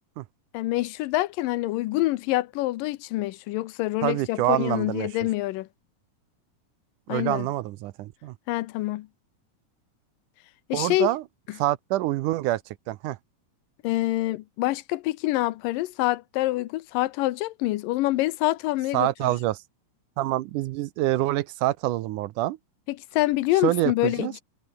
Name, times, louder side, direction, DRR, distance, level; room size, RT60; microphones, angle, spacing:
voice 1, 0.5-5.7 7.1-7.5 8.5-9.1 10.7-11.1 13.8-19.3 22.9-24.4, left 17 dB, 85° left, 2.4 m, -26 dB
voice 2, 4.0-5.1 7.1-8.3 10.7-11.2 11.6-12.6 12.9-13.2 18.9-19.6 20.2-22.6 23.6-24.3, right 15 dB, 75° right, 2.1 m, -26 dB
omnidirectional pair, 3.9 m